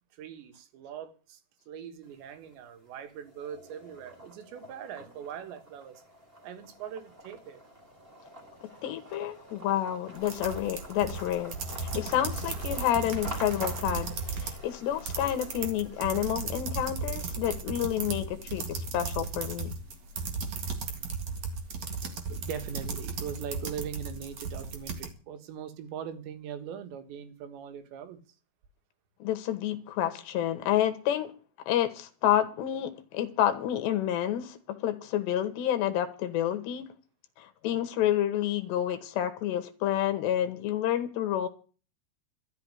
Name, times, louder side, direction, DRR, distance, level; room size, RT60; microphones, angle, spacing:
voice 1, 0.2-1.4 1.7-6.0 6.4-7.6 22.3-28.2, right 8 dB, 75° right, 3.7 m, -41 dB
sound 1, 2.0-2.7 3.1-16.6, right 1 dB, 15° right, 3.2 m, -47 dB
voice 2, 8.6-11.6 11.8-19.8 29.2-31.3 31.7-36.9 37.4-41.5, left 11 dB, 75° left, 3.2 m, -29 dB
sound 2, 10.2-14.6 14.9-25.1, right 4 dB, 50° right, 2.4 m, -35 dB
13.5 x 6.2 x 9.7 m
omnidirectional pair, 5.4 m